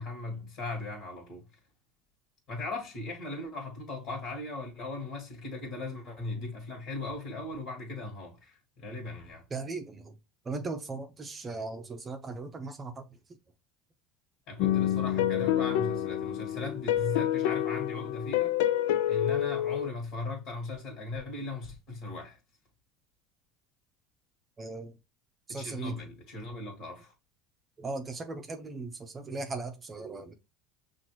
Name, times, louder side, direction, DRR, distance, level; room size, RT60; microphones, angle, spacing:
voice 1, 0.0-1.4 2.5-9.4 14.5-18.6 19.1-22.4 25.5-27.1, left 3 dB, 55° left, 1.7 m, -38 dB
voice 2, 9.5-10.1 10.4-13.0 24.6-24.9 25.5-25.9 27.8-30.3, right 3 dB, 25° right, 0.6 m, -38 dB
sound 1, 14.6-19.9, left 11 dB, 80° left, 0.3 m, -28 dB
5.9 x 2.6 x 2.9 m
supercardioid pair, 110°, 0 cm